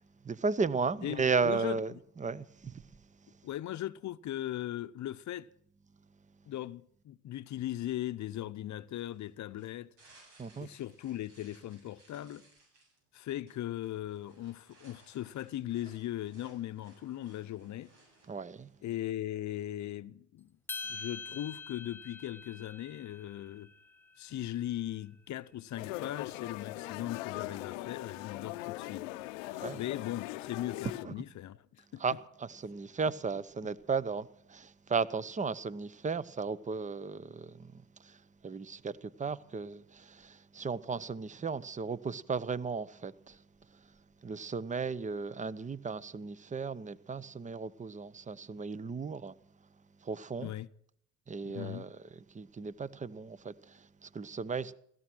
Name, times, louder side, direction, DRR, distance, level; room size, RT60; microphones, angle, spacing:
voice 1, 0.2-2.8 10.4-10.7 18.3-18.7 29.5-29.8 31.0-31.1 32.0-43.4 43.7-43.8 44.2-49.3 50.0-50.5 51.3-54.7, right 5 dB, 20° right, 0.8 m, -35 dB
voice 2, 1.0-1.8 3.4-5.5 6.5-9.9 10.6-12.4 13.1-17.9 18.8-20.5 20.9-23.7 24.2-29.1 29.7-32.0 50.4-50.7 51.4-51.8, left 13 dB, 50° left, 0.8 m, -39 dB
sound 1, 8.9-18.8, right 2 dB, 80° right, 7.9 m, -63 dB
sound 2, 20.7-25.1, left 4 dB, 5° left, 1.3 m, -45 dB
sound 3, 25.8-31.0, left 17 dB, 90° left, 0.8 m, -40 dB
16.5 x 14.0 x 6.2 m
supercardioid pair, 80°, 37 cm